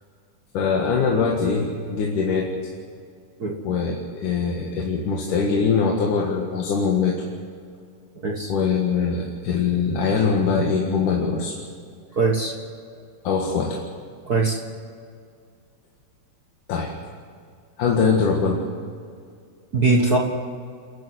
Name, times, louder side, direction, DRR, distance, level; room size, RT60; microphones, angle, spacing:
voice 1, 0.5-2.5 3.6-7.2 8.5-11.6 13.2-13.8 16.7-16.9 17.8-18.6, left 5 dB, 60° left, 0 dB, 3.0 m, -22 dB
voice 2, 12.2-12.5 14.3-14.6 19.7-20.2, right 3 dB, 55° right, 0 dB, 1.0 m, -20 dB
29.0 x 11.0 x 9.4 m, 2.2 s
omnidirectional pair, 4.3 m